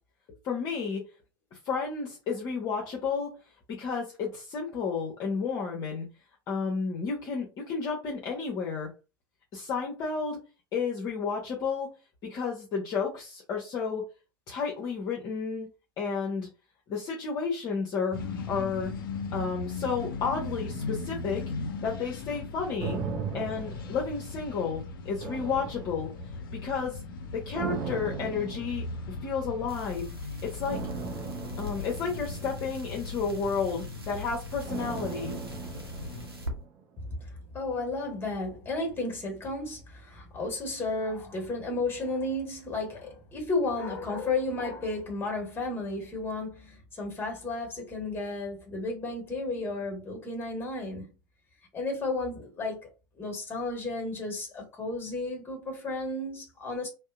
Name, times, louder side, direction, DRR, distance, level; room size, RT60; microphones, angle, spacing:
voice 1, 0.4-1.0 1.5-3.3 3.8-6.1 6.5-8.9 9.5-10.4 10.7-11.9 12.2-14.0 14.5-15.7 16.0-16.5 16.9-18.2 18.5-18.9 19.3-21.4 21.8-23.0 23.3-26.1 26.6-27.0 27.3-28.8 29.2-30.0 30.4-30.8 31.6-35.4, left 5 dB, 35° left, 0.8 m, -31 dB
sound 1, 18.1-36.3, left 4 dB, 65° left, 0.5 m, -38 dB
sound 2, 22.8-24.7 25.2-26.5 27.5-29.3 30.6-33.0 34.6-36.8 37.1-37.2, right 6 dB, 40° right, 0.5 m, -38 dB
sound 3, 29.7-36.5, equal, 85° right, 0.7 m, -45 dB
voice 2, 37.2-51.1 51.7-52.9 53.2-56.9, left 2 dB, 20° left, 1.3 m, -33 dB
2.7 x 2.1 x 2.4 m
figure-of-eight pair, 85°, 12 cm